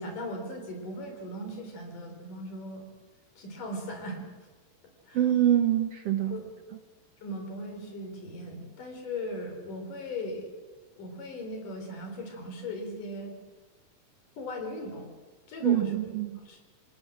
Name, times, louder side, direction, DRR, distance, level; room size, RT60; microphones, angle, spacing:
voice 1, 0.0-2.9 3.4-4.3 5.1-5.2 6.3-6.4 7.2-10.5 11.0-13.3 14.4-15.1 15.5-15.9 16.5-16.6, left 1 dB, 85° left, 4 dB, 5.5 m, -38 dB
voice 2, 5.1-6.4 6.7-6.8 15.6-16.4, right 11 dB, 65° right, 7 dB, 1.6 m, -25 dB
27.5 x 18.0 x 7.5 m, 1.3 s
omnidirectional pair, 3.6 m